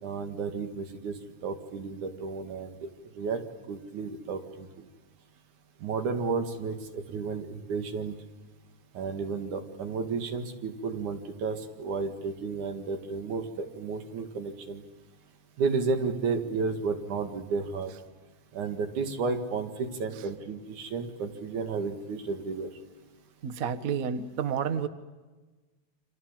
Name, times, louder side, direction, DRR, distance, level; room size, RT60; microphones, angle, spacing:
voice 1, 0.0-2.9 3.2-3.4 3.7-4.9 5.8-8.2 9.0-14.8 15.6-17.9 18.5-22.7, right 4 dB, 80° right, 6 dB, 3.5 m, -32 dB
voice 2, 23.4-24.9, right 7 dB, 55° right, 11 dB, 0.9 m, -30 dB
29.5 x 26.5 x 7.5 m, 1.3 s
omnidirectional pair, 3.4 m